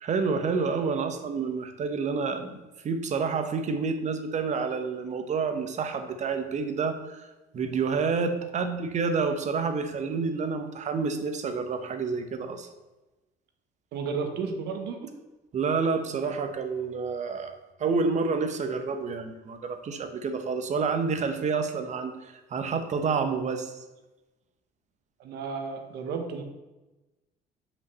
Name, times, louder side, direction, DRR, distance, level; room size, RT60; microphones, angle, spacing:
voice 1, 0.0-12.7 15.5-17.5 17.8-23.7, right 5 dB, 45° right, 8 dB, 1.0 m, -29 dB
voice 2, 13.9-15.1 25.2-26.4, right 5 dB, 80° right, 5 dB, 1.2 m, -33 dB
5.6 x 5.4 x 6.8 m, 1.1 s
cardioid pair, 110°, 17 cm